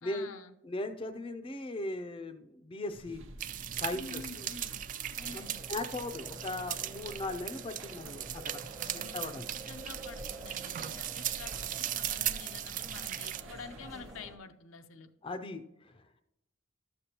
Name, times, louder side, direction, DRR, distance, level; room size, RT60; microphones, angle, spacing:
voice 1, 0.0-0.6 3.9-4.8 5.2-5.7 8.8-9.3 9.7-15.1, left 4 dB, 75° left, 8 dB, 0.6 m, -48 dB
voice 2, 0.6-3.2 3.7-4.5 5.3-5.4 5.7-9.5 15.2-16.2, left 2 dB, 25° left, 8 dB, 0.4 m, -39 dB
sound 1, 2.9-14.1, right 1 dB, 65° right, 0.7 m, -50 dB
sound 2, 3.4-13.4, right 12 dB, 40° right, 0.3 m, -38 dB
sound 3, 5.2-14.4, right 2 dB, 20° right, 0.7 m, -50 dB
12.5 x 6.8 x 2.9 m, 0.87 s
head